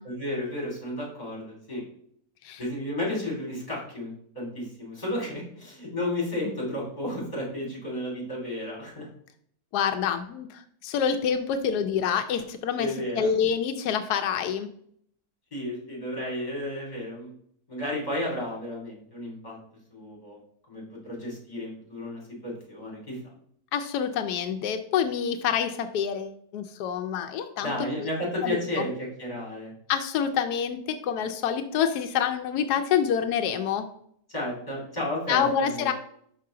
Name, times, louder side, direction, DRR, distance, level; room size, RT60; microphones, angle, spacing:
voice 1, 0.0-1.8 2.6-9.1 12.8-13.3 15.5-17.3 17.7-19.6 19.9-20.4 20.7-23.2 27.6-29.7 34.3-35.9, left 1 dB, 25° left, -3 dB, 2.7 m, -33 dB
voice 2, 9.7-12.9 13.1-14.7 23.7-27.7 28.0-28.1 28.4-28.9 29.9-33.9 35.3-35.9, left 8 dB, 90° left, 7 dB, 1.1 m, -27 dB
5.7 x 5.4 x 3.6 m, 0.65 s
omnidirectional pair, 1.6 m